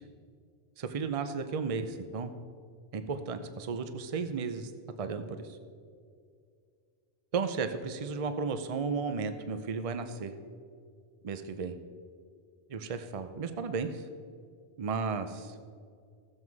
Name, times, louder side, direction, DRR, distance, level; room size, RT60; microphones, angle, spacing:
voice 1, 0.8-2.3 2.9-4.7 5.0-5.6 7.3-10.3 11.2-11.8 12.7-14.0 14.8-15.5, right 5 dB, 40° right, 9 dB, 0.7 m, -34 dB
15.0 x 7.6 x 4.7 m, 2.2 s
omnidirectional pair, 1.1 m